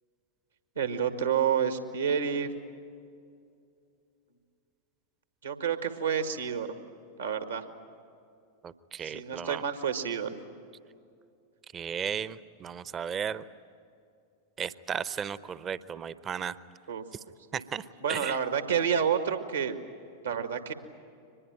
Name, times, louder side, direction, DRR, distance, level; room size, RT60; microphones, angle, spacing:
voice 1, 0.8-2.5 5.4-6.7 7.2-7.6 9.0-10.4 16.9-17.0 17.5-17.6 18.0-19.8 20.2-20.7, right 7 dB, 75° right, 8 dB, 1.8 m, -29 dB
voice 2, 8.6-9.6 11.7-13.4 14.6-16.6 17.5-18.4, right 7 dB, 25° right, 17 dB, 0.8 m, -35 dB
24.0 x 21.0 x 9.1 m, 2.5 s
figure-of-eight pair, 90°, 0 cm